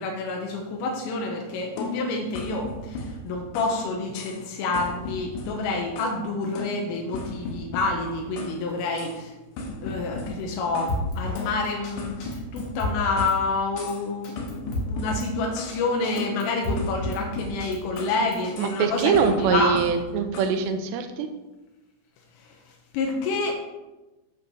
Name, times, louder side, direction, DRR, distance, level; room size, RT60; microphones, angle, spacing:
voice 1, 0.0-9.4 9.7-20.0 22.4-23.5, left 3 dB, 85° left, 0 dB, 3.7 m, -28 dB
sound 1, 1.8-3.8 4.2-4.5 4.7-6.2 6.6-8.6 9.0-9.2 9.6-11.0 11.4-13.4 13.8-14.1 14.4-15.8 16.2-18.2 18.6-18.8 19.1-20.6, left 1 dB, 70° left, 3.4 m, -36 dB
Drum kit, 10.9-11.5 11.8-11.9 12.2-13.4 13.8-13.9 14.2-15.3 15.7-15.8 16.0-17.2 17.6-18.5, left 1 dB, 55° left, 2.1 m, -31 dB
voice 2, 18.6-21.3, right 6 dB, 80° right, 7 dB, 2.6 m, -23 dB
9.5 x 6.6 x 5.5 m, 1.1 s
omnidirectional pair, 5.7 m